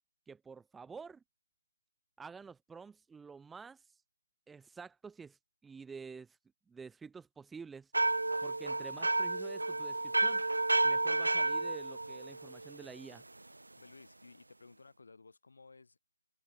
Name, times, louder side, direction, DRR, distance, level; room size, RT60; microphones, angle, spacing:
voice 1, 0.3-1.2 2.2-4.0 4.5-6.4 6.7-7.9 8.4-10.4 10.8-13.2, right 5 dB, 5° right, 0.9 m, -49 dB
sound 1, 7.9-12.8, right 2 dB, 80° right, 0.4 m, -31 dB
voice 2, 13.8-16.0, left 4 dB, 65° left, 7.6 m, -57 dB
open air
figure-of-eight pair, 155°, 0 cm